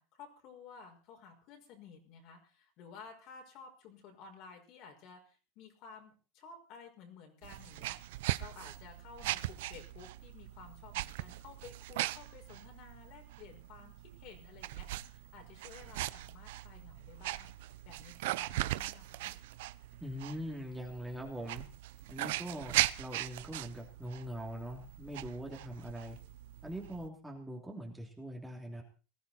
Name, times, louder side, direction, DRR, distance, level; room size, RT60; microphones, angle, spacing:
voice 1, 0.0-19.3, left 5 dB, 50° left, 3 dB, 5.5 m, -54 dB
sound 1, 7.4-27.1, right 17 dB, 75° right, 0.7 m, -39 dB
voice 2, 20.0-21.6 22.1-26.2 26.6-28.8, equal, 5° right, -1 dB, 2.9 m, -42 dB
20.0 x 14.5 x 4.3 m, 0.36 s
supercardioid pair, 150°, 0 cm